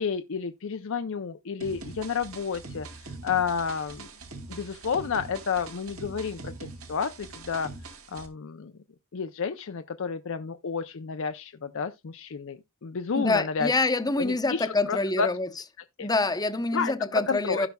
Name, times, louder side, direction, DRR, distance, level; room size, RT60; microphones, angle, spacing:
voice 1, 0.0-4.1 4.5-7.7 8.1-8.7 9.1-13.7 14.2-15.3 16.0-16.1 16.7-17.7, left 6 dB, 65° left, 0.6 m, -31 dB
sound 1, 1.6-8.3, right 3 dB, 85° right, 2.2 m, -43 dB
voice 2, 13.2-15.5 16.0-17.7, left 3 dB, 20° left, 0.8 m, -26 dB
16.0 x 5.8 x 2.3 m
head